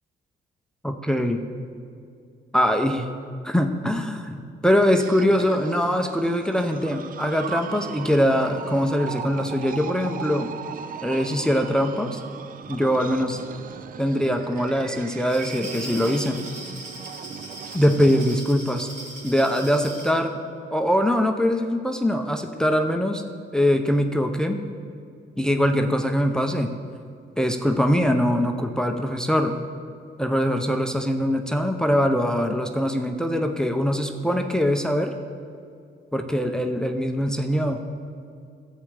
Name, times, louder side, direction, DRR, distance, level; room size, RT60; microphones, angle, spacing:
voice 1, 0.8-1.4 2.5-3.1 3.4-10.5 11.0-12.2 12.7-13.4 14.0-16.4 17.7-18.9 19.2-20.3 20.7-23.2 23.5-24.6 25.4-26.7 27.4-29.6 30.2-35.1 36.1-37.8, equal, 5° left, 5 dB, 0.6 m, -22 dB
sound 1, 4.6-18.4, right 7 dB, 45° right, 0.4 m, -38 dB
Glass, 15.1-20.2, right 2 dB, 70° right, 2.4 m, -39 dB
13.5 x 8.3 x 3.3 m, 2.4 s
cardioid pair, 90°, 20 cm